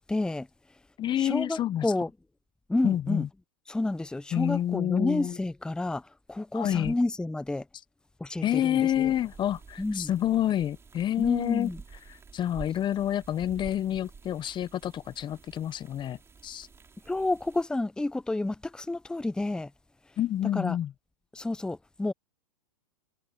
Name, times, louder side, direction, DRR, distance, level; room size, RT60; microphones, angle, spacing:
voice 1, 0.1-0.5 1.2-2.1 2.7-3.3 3.7-7.6 8.2-9.1 9.8-10.1 11.2-11.8 17.1-19.7 20.5-20.8 21.3-22.1, left 2 dB, 5° left, 1.0 m, -30 dB
voice 2, 1.0-1.9 2.8-3.3 4.3-5.4 6.5-6.9 8.4-11.7 12.1-16.7 20.2-20.9, left 11 dB, 25° left, 1.0 m, -28 dB
sound 1, 8.9-17.6, right 5 dB, 15° right, 3.6 m, -50 dB
hypercardioid pair, 115°, 19 cm